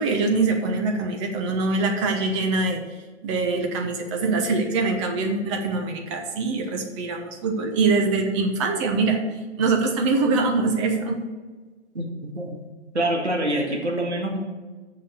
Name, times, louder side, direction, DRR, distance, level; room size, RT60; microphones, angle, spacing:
voice 1, 0.0-2.8 3.2-11.2, right 3 dB, 25° right, 3 dB, 1.2 m, -23 dB
voice 2, 11.9-12.6 12.9-14.4, right 1 dB, 75° right, 1 dB, 2.0 m, -26 dB
7.2 x 6.4 x 6.7 m, 1.3 s
figure-of-eight pair, 125°, 34 cm